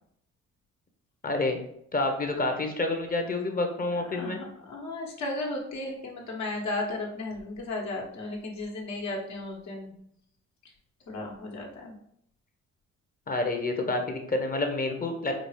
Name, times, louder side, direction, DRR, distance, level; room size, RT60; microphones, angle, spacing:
voice 1, 1.2-1.6 1.9-4.4 13.3-15.3, left 2 dB, 30° left, 4 dB, 0.8 m, -28 dB
voice 2, 4.0-9.9 11.1-12.0, left 2 dB, 65° left, -1 dB, 1.3 m, -35 dB
5.1 x 2.4 x 3.2 m, 0.72 s
cardioid pair, 90°, 30 cm